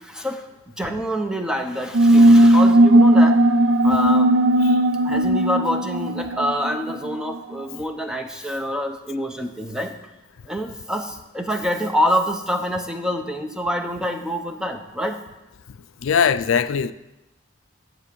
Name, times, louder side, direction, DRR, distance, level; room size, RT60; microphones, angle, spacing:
voice 1, 0.8-3.4 3.8-4.3 5.1-9.9 10.5-11.1 11.3-15.2, equal, 5° right, 5 dB, 0.6 m, -26 dB
sound 1, 1.9-7.1, right 1 dB, 75° right, 0.5 m, -15 dB
voice 2, 16.0-16.9, left 7 dB, 80° left, 13 dB, 0.4 m, -20 dB
9.9 x 7.6 x 5.3 m, 0.97 s
head